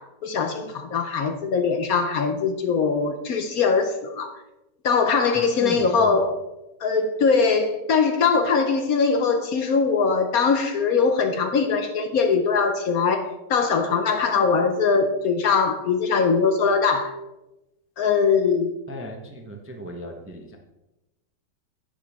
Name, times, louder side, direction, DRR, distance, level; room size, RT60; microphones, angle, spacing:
voice 1, 0.0-4.3 4.8-6.4 6.8-17.1 18.0-18.7, left 5 dB, 60° left, 7 dB, 1.1 m, -21 dB
voice 2, 5.6-6.2 18.9-20.6, right 1 dB, 15° right, 2 dB, 0.5 m, -36 dB
10.5 x 9.0 x 3.5 m, 0.97 s
omnidirectional pair, 1.9 m